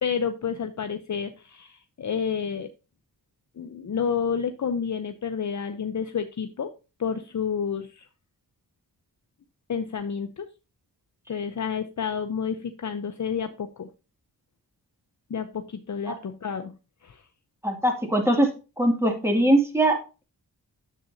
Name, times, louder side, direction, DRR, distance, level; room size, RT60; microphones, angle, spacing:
voice 1, 0.0-2.7 3.6-6.7 7.0-8.1 9.7-10.5 11.3-13.9 15.3-16.7 17.0-17.2, left 6 dB, 45° left, 7 dB, 0.7 m, -30 dB
voice 2, 17.6-18.5 18.8-20.2, right 1 dB, 5° right, 2 dB, 2.4 m, -22 dB
10.0 x 7.6 x 2.7 m, 0.31 s
wide cardioid pair, 110°, 39 cm